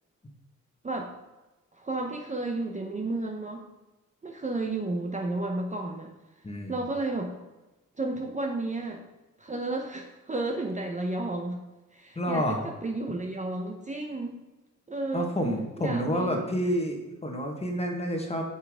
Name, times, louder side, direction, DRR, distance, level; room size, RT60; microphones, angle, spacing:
voice 1, 1.8-3.6 4.2-6.1 6.7-7.3 8.0-9.0 9.4-11.6 11.9-14.4 14.9-15.3 15.8-16.4, right 2 dB, 25° right, 2 dB, 0.7 m, -32 dB
voice 2, 6.4-6.8 12.1-12.6 15.1-18.4, equal, 20° left, 2 dB, 1.3 m, -29 dB
8.4 x 7.1 x 3.6 m, 1.1 s
wide cardioid pair, 145°, 32 cm